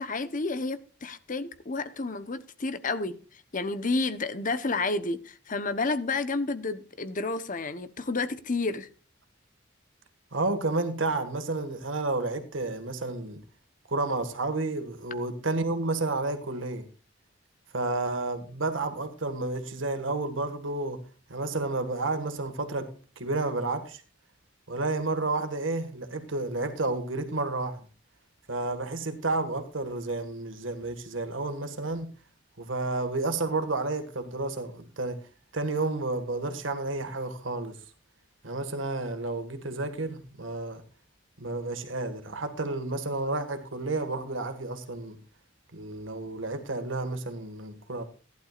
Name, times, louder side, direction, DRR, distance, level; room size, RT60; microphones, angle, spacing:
voice 1, 0.0-3.2 3.5-8.9, left 3 dB, 45° left, 1.0 m, -30 dB
voice 2, 10.3-13.4 13.9-16.9 17.7-21.0 21.3-24.0 24.7-27.8 28.5-32.1 32.6-35.2 35.5-37.8 38.4-40.8 41.4-45.2 45.7-48.0, right 2 dB, 80° right, 1.9 m, -31 dB
15.5 x 11.5 x 2.5 m
head